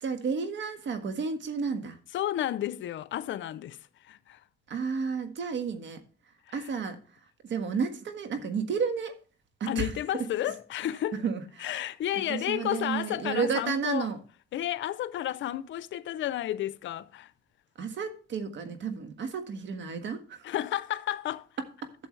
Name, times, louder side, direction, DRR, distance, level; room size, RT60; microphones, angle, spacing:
voice 1, 0.0-2.0 4.7-6.0 6.5-7.0 7.5-9.1 9.6-10.3 11.1-11.8 12.3-14.2 17.8-20.4, right 5 dB, 70° right, 1.6 m, -32 dB
voice 2, 2.1-3.8 4.0-4.4 6.5-6.6 9.7-11.2 11.6-14.1 14.5-17.3 20.4-21.5, left 12 dB, 70° left, 0.6 m, -32 dB
12.5 x 7.0 x 3.2 m
cardioid pair, 90°, 20 cm